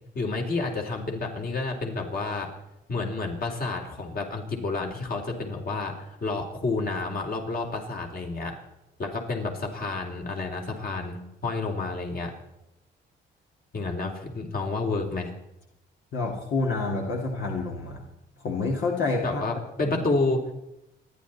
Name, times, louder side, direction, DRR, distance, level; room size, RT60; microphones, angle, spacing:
voice 1, 0.1-2.5 2.9-5.9 6.2-8.6 9.0-12.3 13.7-15.3 19.2-20.5, left 3 dB, 50° left, 2 dB, 3.7 m, -30 dB
voice 2, 16.1-18.1 18.4-19.4 19.8-20.0, left 3 dB, 70° left, -1 dB, 2.7 m, -28 dB
28.5 x 10.5 x 4.2 m, 0.87 s
cardioid pair, 90°, 20 cm